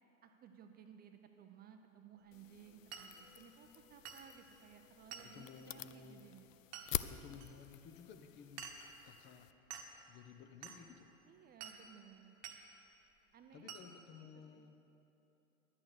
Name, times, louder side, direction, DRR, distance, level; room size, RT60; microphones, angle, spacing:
voice 1, 0.2-6.6 6.9-7.4 11.2-12.4 13.3-13.8 14.1-14.3 14.5-14.7, right 8 dB, 25° right, 6 dB, 0.6 m, -59 dB
sound 1, 2.3-9.5, left 12 dB, 70° left, 0.5 m, -47 dB
Glass, 2.9-3.1 4.0-4.3 5.1-5.4 6.7-6.9 7.4-7.5 8.6-8.9 9.7-9.9 10.6-10.8 11.6-11.8 12.4-12.6 13.7-13.9, right 7 dB, 40° right, 1.2 m, -49 dB
voice 2, 5.2-6.2 7.1-8.7 9.0-9.5 10.1-11.1 13.5-14.7, left 6 dB, 25° left, 7 dB, 0.7 m, -55 dB
10.5 x 8.7 x 6.4 m, 2.9 s
figure-of-eight pair, 90°, 41 cm